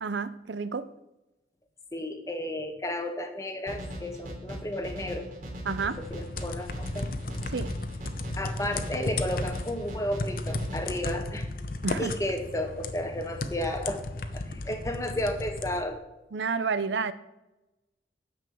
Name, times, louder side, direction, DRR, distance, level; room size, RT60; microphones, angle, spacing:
voice 1, 0.0-0.9 5.7-6.0 7.5-7.7 11.8-12.1 16.3-17.1, right 5 dB, 75° right, 0.6 m, -30 dB
voice 2, 1.9-5.3 6.0-7.0 8.4-11.5 12.0-14.0 14.3-16.0, left 1 dB, 15° left, 1.1 m, -33 dB
sound 1, 3.7-11.1, equal, 45° right, 2.9 m, -39 dB
sound 2, 5.8-15.8, left 2 dB, 50° left, 0.7 m, -35 dB
9.5 x 5.4 x 7.0 m
head